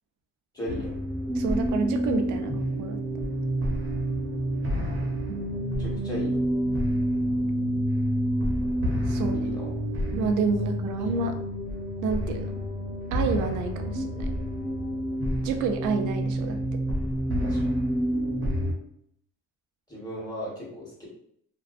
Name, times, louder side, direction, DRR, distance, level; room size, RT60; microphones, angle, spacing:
voice 1, 0.5-0.9 5.8-6.4 9.3-9.7 17.4-17.7 19.9-21.1, left 1 dB, 15° left, -6 dB, 1.3 m, -36 dB
sound 1, 0.7-18.7, equal, 45° right, 0.8 m, -28 dB
voice 2, 1.3-3.0 9.1-9.5 10.1-11.4 12.0-12.6 13.1-14.3 15.4-16.8, right 5 dB, 85° right, 6 dB, 0.5 m, -29 dB
2.6 x 2.2 x 2.5 m, 0.69 s
cardioid pair, 90°, 30 cm